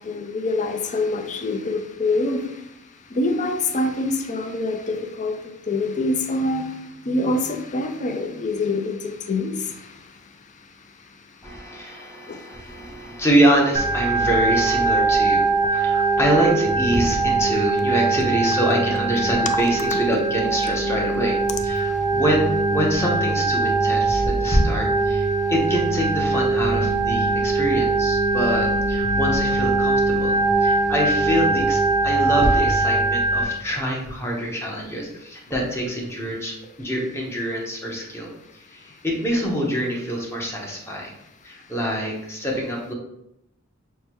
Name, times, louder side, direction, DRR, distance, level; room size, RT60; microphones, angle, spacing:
voice 1, 0.0-2.4 3.1-5.4 5.7-6.7 7.1-9.7, left 2 dB, 35° left, 6 dB, 0.4 m, -25 dB
voice 2, 11.4-38.3 38.5-41.1 41.4-42.9, equal, 10° left, -2 dB, 0.8 m, -25 dB
Organ, 13.8-33.4, right 3 dB, 25° right, 0.5 m, -21 dB
6.3 x 2.3 x 2.9 m, 0.82 s
head